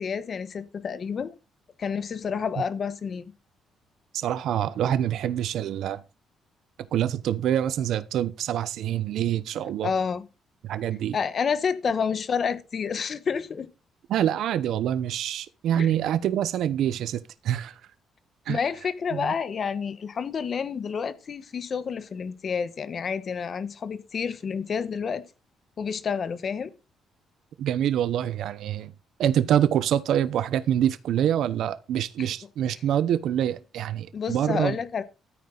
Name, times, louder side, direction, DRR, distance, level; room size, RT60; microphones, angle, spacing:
voice 1, 0.0-1.3 1.8-3.3 9.8-10.3 11.1-13.7 15.8-15.9 18.5-25.2 25.8-26.7 32.2-32.3 34.1-35.0, left 6 dB, 40° left, 1.2 m, -29 dB
voice 2, 4.1-6.0 6.9-9.9 10.6-11.2 14.1-17.7 18.5-18.6 19.1-19.3 27.6-28.9 29.2-34.7, right 10 dB, 70° right, 0.9 m, -26 dB
13.5 x 9.4 x 4.0 m
cardioid pair, 145°, 0 cm